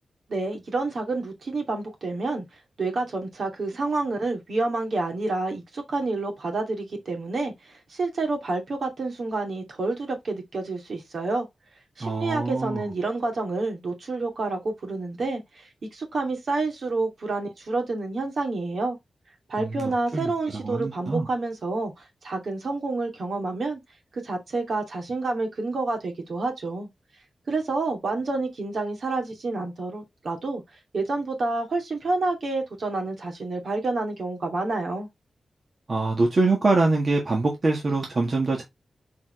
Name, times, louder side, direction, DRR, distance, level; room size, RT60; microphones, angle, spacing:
voice 1, 0.3-2.4 2.8-11.5 12.0-19.0 19.5-23.8 24.1-26.9 27.5-30.6 30.9-35.1, right 3 dB, 65° right, 2.5 m, -29 dB
voice 2, 12.0-12.8 19.6-20.3 20.6-21.3 35.9-38.6, right 3 dB, 45° right, 1.7 m, -24 dB
7.1 x 4.4 x 3.2 m
cardioid pair, 75°, 0 cm